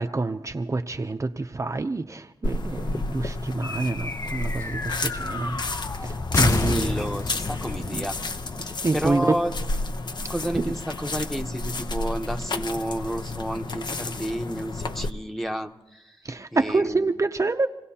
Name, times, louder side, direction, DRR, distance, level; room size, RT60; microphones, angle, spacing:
voice 1, 0.0-5.6 6.0-6.9 7.8-8.1 8.6-9.4 10.6-10.7 16.2-17.7, right 3 dB, 35° right, 5 dB, 0.6 m, -27 dB
sound 1, 2.4-15.1, left 2 dB, 55° left, 0.8 m, -31 dB
sound 2, 3.6-9.3, left 3 dB, 35° left, 0.4 m, -31 dB
voice 2, 6.4-8.3 8.9-9.5 10.3-16.2 16.5-17.1, equal, ahead, 4 dB, 1.0 m, -31 dB
27.0 x 17.0 x 2.9 m, 1.0 s
wide cardioid pair, 70°, 9 cm